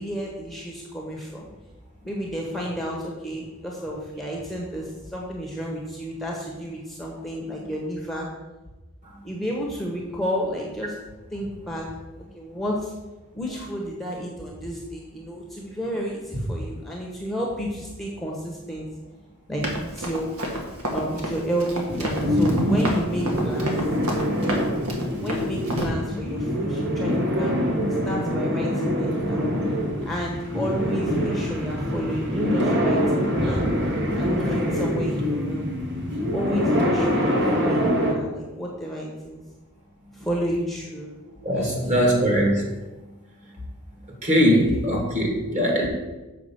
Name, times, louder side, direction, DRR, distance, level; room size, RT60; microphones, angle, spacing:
voice 1, 0.0-1.5 2.0-8.3 9.2-11.0 11.3-11.9 12.3-12.9 13.3-18.9 19.5-20.3 20.9-23.8 25.1-27.6 28.0-29.5 30.0-33.6 34.1-35.7 36.3-39.4 40.1-41.1 41.5-41.8, equal, ahead, -2 dB, 1.1 m, -31 dB
Run, 19.6-25.9, equal, 75° right, 1.7 m, -30 dB
sound 1, 21.9-38.1, equal, 55° right, 1.6 m, -24 dB
voice 2, 41.4-42.7 44.2-45.9, equal, 35° right, 0 dB, 1.9 m, -21 dB
6.7 x 4.7 x 6.8 m, 1.1 s
head